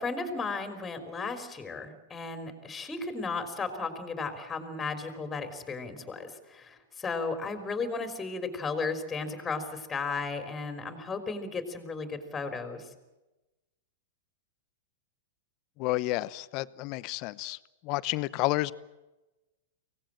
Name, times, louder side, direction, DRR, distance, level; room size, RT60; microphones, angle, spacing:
voice 1, 0.0-12.8, left 4 dB, 15° left, 7 dB, 3.6 m, -35 dB
voice 2, 15.8-17.6 17.8-18.7, left 19 dB, 45° left, 17 dB, 0.8 m, -30 dB
24.0 x 18.0 x 8.8 m, 1.1 s
hypercardioid pair, 110°, 0 cm